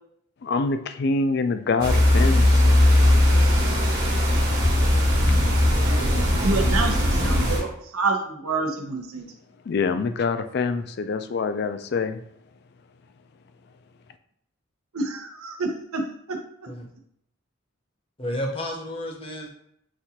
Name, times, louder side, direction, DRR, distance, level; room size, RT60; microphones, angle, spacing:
voice 1, 0.4-2.8 9.7-12.2, left 4 dB, 50° left, 9 dB, 0.3 m, -25 dB
sound 1, 1.8-7.6, left 1 dB, 50° right, 1.2 m, -19 dB
voice 2, 6.4-9.2 14.9-16.0 16.3-16.4, right 3 dB, 85° right, 3 dB, 0.8 m, -28 dB
voice 3, 18.2-19.5, left 1 dB, 25° left, 2 dB, 0.7 m, -31 dB
6.1 x 2.4 x 2.8 m, 0.71 s
head